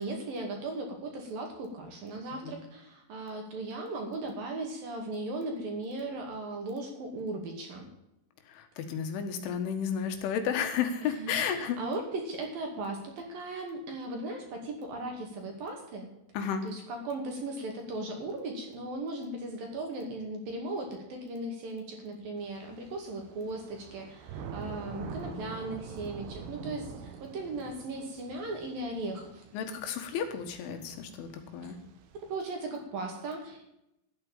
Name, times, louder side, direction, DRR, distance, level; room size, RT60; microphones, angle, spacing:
voice 1, 0.0-7.9 11.0-16.1 16.6-29.4 32.3-33.7, right 2 dB, 55° right, 2 dB, 3.5 m, -37 dB
voice 2, 8.5-11.8 16.3-16.6 24.8-25.5 29.5-31.8, left 7 dB, 80° left, 6 dB, 3.9 m, -33 dB
Thunder / Rain, 22.4-32.4, right 6 dB, 90° right, 3.7 m, -46 dB
12.5 x 9.0 x 7.2 m, 0.84 s
omnidirectional pair, 5.6 m